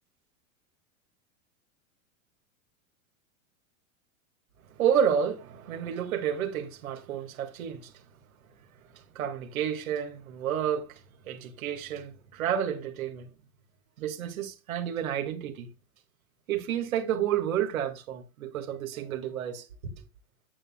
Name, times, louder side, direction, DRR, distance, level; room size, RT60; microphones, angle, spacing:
voice 1, 4.8-7.9 8.9-11.0 11.2-13.3 14.0-15.7 16.5-19.9, right 9 dB, 75° right, 2.0 m, -30 dB
8.7 x 6.9 x 2.3 m
hypercardioid pair, 110°, 41 cm